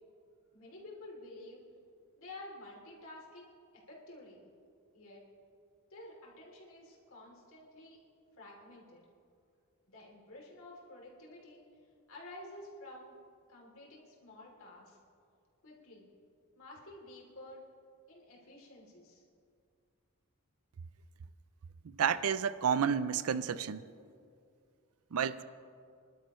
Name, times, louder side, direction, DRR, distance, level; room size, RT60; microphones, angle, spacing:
voice 1, 0.5-1.6 2.2-3.5 3.9-4.4 4.9-5.2 5.9-8.0 8.4-9.0 9.9-11.6 12.1-13.1 13.5-15.0 15.6-16.1 16.5-17.6 18.1-19.2, left 1 dB, 65° left, -2 dB, 3.1 m, -51 dB
voice 2, 21.8-23.8 25.1-25.4, right 7 dB, 75° right, 15 dB, 0.5 m, -31 dB
24.5 x 12.0 x 3.1 m, 2.3 s
head